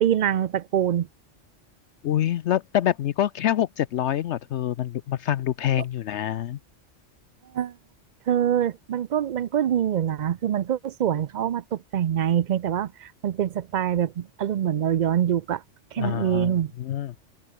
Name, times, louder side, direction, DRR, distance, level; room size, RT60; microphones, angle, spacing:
voice 1, 0.0-1.1 7.5-7.7 8.3-15.6 15.9-16.7, right 10 dB, 60° right, 0.5 m, -24 dB
voice 2, 2.0-6.6 16.0-17.1, left 11 dB, 70° left, 0.9 m, -26 dB
open air
omnidirectional pair, 1.3 m